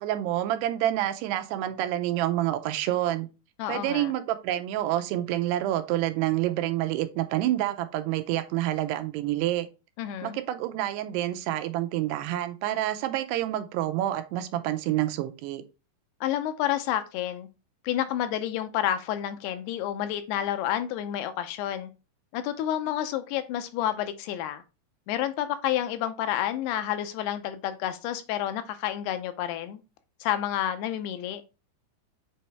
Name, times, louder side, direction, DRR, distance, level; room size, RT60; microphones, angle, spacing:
voice 1, 0.0-3.3 3.7-9.7 10.2-15.6, right 13 dB, 90° right, 2.7 m, -28 dB
voice 2, 3.6-4.1 10.0-10.4 16.2-17.5 17.8-21.9 22.3-24.6 25.1-29.8 30.2-31.4, left 11 dB, 85° left, 2.6 m, -29 dB
7.6 x 4.2 x 3.4 m
omnidirectional pair, 4.7 m